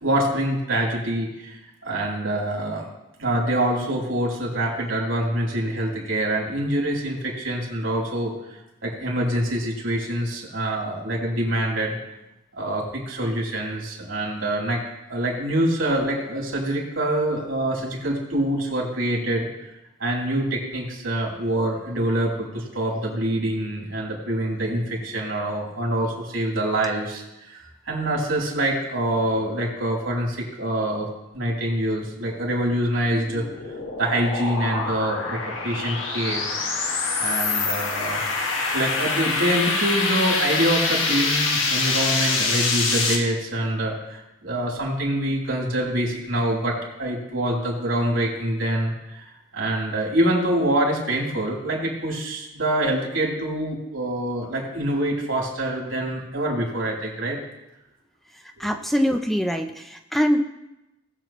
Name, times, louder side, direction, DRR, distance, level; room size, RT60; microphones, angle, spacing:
voice 1, 0.0-2.9 3.2-8.3 8.8-12.0 12.5-14.8 15.1-19.5 20.0-33.5 34.0-36.4 37.2-38.2 38.7-49.2 49.5-57.4, right 1 dB, 90° right, -3 dB, 3.4 m, -25 dB
sound 1, 33.0-43.2, left 3 dB, 90° left, 1.7 m, -25 dB
voice 2, 58.3-60.4, equal, ahead, 5 dB, 0.5 m, -23 dB
19.5 x 7.5 x 3.1 m, 0.94 s
head